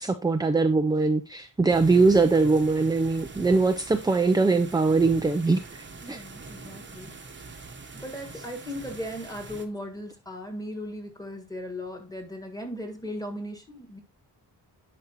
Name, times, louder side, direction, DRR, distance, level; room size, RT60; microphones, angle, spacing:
voice 1, 0.0-5.6 6.1-6.2, right 3 dB, 10° right, 0.4 m, -22 dB
sound 1, 1.7-9.7, right 3 dB, 25° right, 1.0 m, -43 dB
voice 2, 6.0-7.1 7.9-14.0, equal, 10° left, 1.6 m, -37 dB
10.5 x 5.1 x 2.9 m
wide cardioid pair, 125°, 41 cm